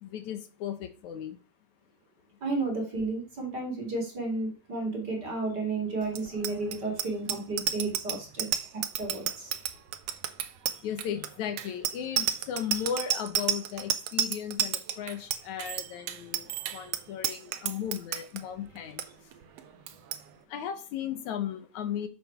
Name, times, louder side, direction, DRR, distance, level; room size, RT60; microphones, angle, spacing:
voice 1, 0.0-1.4 10.8-19.1 20.5-22.1, left 9 dB, 80° left, 2.6 m, -36 dB
voice 2, 2.4-8.5 9.0-9.5, right 3 dB, 35° right, 3.4 m, -32 dB
Bicycle bell, 6.1-18.4 18.8-19.0 19.3-19.6 19.9-20.2, right 10 dB, 70° right, 1.7 m, -31 dB
8.5 x 7.2 x 5.8 m
omnidirectional pair, 3.3 m